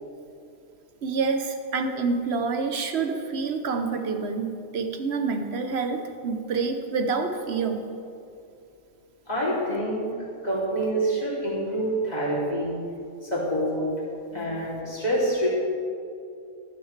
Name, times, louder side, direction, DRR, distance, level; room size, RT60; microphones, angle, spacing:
voice 1, 1.0-7.9, right 4 dB, 55° right, 6 dB, 1.0 m, -27 dB
voice 2, 9.3-10.1 10.4-12.8 13.2-13.8 14.3-15.5, right 1 dB, 30° left, -7 dB, 3.0 m, -26 dB
13.0 x 12.5 x 3.3 m, 2.5 s
omnidirectional pair, 1.4 m